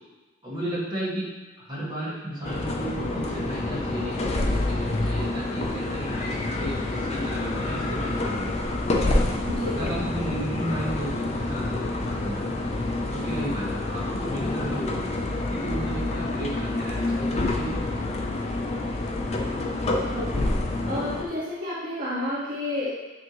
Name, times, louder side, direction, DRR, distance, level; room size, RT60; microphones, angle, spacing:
voice 1, 0.4-1.3 1.6-8.6 9.6-12.5 13.1-15.0 15.5-17.8, right 1 dB, 25° right, -9 dB, 1.9 m, -34 dB
sound 1, 2.4-21.2, left 2 dB, 35° left, 0.6 m, -28 dB
voice 2, 9.4-9.9 20.1-20.5 20.9-22.9, left 1 dB, 45° right, -10 dB, 1.7 m, -30 dB
8.7 x 3.5 x 3.1 m, 1.2 s
head